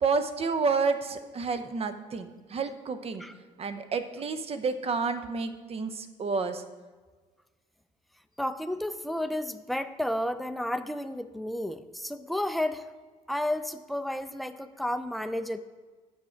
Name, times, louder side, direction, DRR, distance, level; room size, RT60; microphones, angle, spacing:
voice 1, 0.0-3.2 3.6-6.6, right 4 dB, 35° right, 10 dB, 0.7 m, -30 dB
voice 2, 8.4-12.9 13.3-15.6, left 1 dB, ahead, 10 dB, 0.4 m, -32 dB
7.8 x 6.1 x 4.4 m, 1.4 s
supercardioid pair, 90°, 16 cm